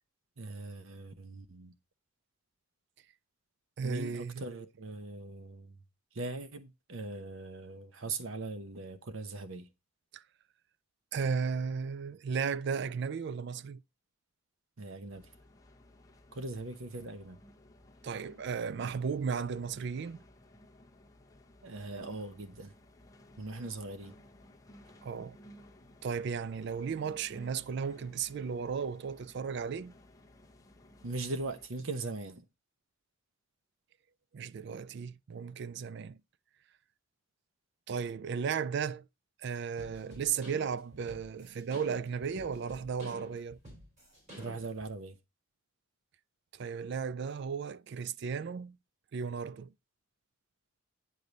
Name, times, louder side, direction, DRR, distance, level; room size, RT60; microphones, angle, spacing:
voice 1, 0.4-1.7 3.8-5.8 6.1-9.7 14.8-15.3 16.3-17.4 21.6-22.7 23.4-24.1 31.0-32.5 44.4-45.2, right 3 dB, 75° right, 0.9 m, -40 dB
voice 2, 3.8-4.4 10.1-10.2 11.1-13.8 18.0-20.2 25.0-25.4 26.0-29.9 34.3-36.2 37.9-39.1 39.4-43.6 46.5-48.8 49.1-49.7, right 6 dB, 55° right, 0.3 m, -35 dB
sound 1, 15.1-31.7, left 1 dB, 15° left, 0.8 m, -58 dB
sound 2, 39.8-44.9, equal, 35° right, 3.6 m, -50 dB
9.4 x 5.1 x 4.0 m
head